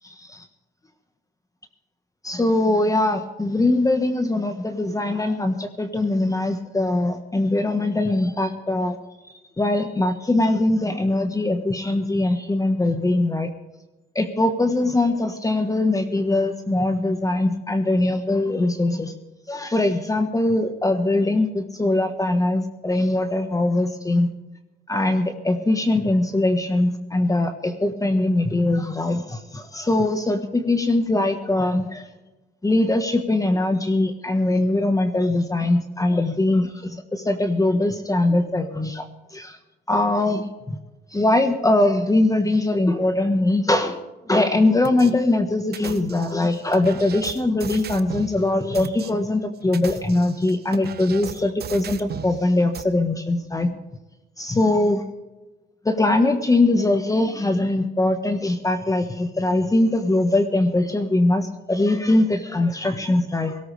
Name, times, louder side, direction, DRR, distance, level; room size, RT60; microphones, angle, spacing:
voice 1, 2.2-8.9 9.6-13.5 14.1-19.1 19.5-24.3 24.9-32.1 32.6-39.1 39.3-39.6 39.9-40.8 41.1-44.0 44.3-53.7 54.4-55.0 55.8-63.6, left 2 dB, 15° left, 7 dB, 1.3 m, -21 dB
sound 1, 44.8-45.1 45.7-48.3 48.7-49.1 49.6-52.3 52.7-52.8, right 8 dB, 55° right, 1.1 m, -36 dB
18.5 x 17.5 x 3.4 m, 1.1 s
cardioid pair, 90°, 20 cm